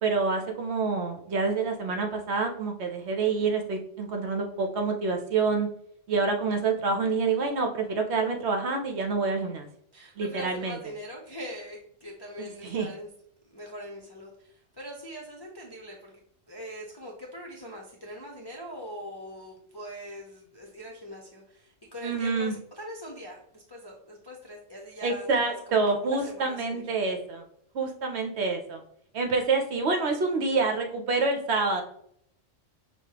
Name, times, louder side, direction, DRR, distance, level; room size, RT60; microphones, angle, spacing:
voice 1, 0.0-5.7 6.1-9.7 10.2-10.8 12.4-12.9 22.0-22.5 25.0-27.5 27.7-28.8 29.1-31.8, right 4 dB, 65° right, 3 dB, 0.9 m, -27 dB
voice 2, 9.9-13.1 13.5-16.1 16.5-26.8, equal, 30° left, -3 dB, 0.5 m, -42 dB
6.3 x 2.3 x 2.9 m, 0.67 s
omnidirectional pair, 1.3 m